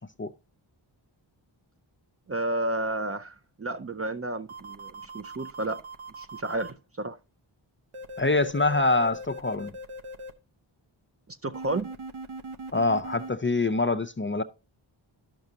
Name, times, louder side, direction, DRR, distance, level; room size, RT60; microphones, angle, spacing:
voice 1, 2.3-5.8 6.2-7.2 11.3-11.9, right 2 dB, 30° right, 0.4 m, -32 dB
sound 1, 4.5-6.7 7.9-10.3 11.5-13.3, right 1 dB, 90° right, 0.8 m, -40 dB
voice 2, 8.2-9.7 12.7-14.4, left 2 dB, 25° left, 0.4 m, -25 dB
12.0 x 6.0 x 2.7 m
wide cardioid pair, 65°, 48 cm